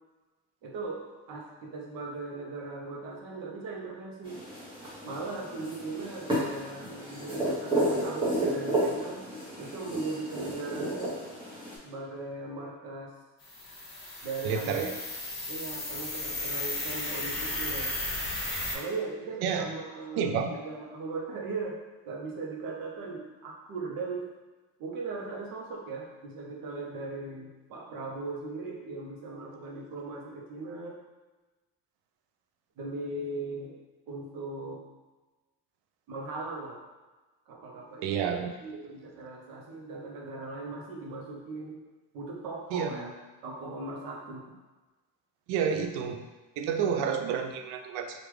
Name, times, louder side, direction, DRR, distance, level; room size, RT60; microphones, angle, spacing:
voice 1, 0.6-4.4 5.0-9.3 9.6-11.1 11.8-13.1 14.2-14.9 15.5-17.9 18.7-21.8 22.0-24.3 24.8-31.0 32.8-33.8 34.1-34.8 36.1-36.8 37.5-41.8 42.1-43.1 43.4-44.5, right 3 dB, 60° right, -1 dB, 0.9 m, -38 dB
sound 1, 4.2-11.8, right 1 dB, 15° right, 1.0 m, -32 dB
sound 2, 13.4-18.7, left 2 dB, 35° left, 1.4 m, -34 dB
voice 2, 14.4-14.9 19.4-19.7 20.2-20.5 38.0-38.5 42.7-42.9 45.5-46.2 46.6-48.2, right 7 dB, 85° right, 6 dB, 0.5 m, -29 dB
3.4 x 2.5 x 3.1 m, 1.2 s
cardioid pair, 135°, 38 cm